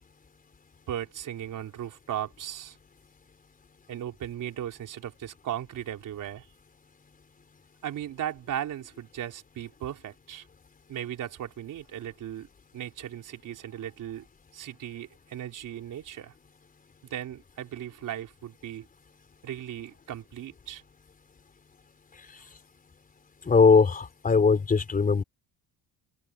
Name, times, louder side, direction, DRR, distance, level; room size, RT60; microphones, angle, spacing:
voice 1, 0.9-2.8 3.9-6.5 7.8-10.4 10.9-12.5 12.7-14.3 14.5-16.3 17.1-18.9 19.4-20.8, right 11 dB, 50° right, 4.0 m, -37 dB
voice 2, 23.5-25.2, left 5 dB, 20° left, 4.5 m, -20 dB
cardioid pair, 175°, 39 cm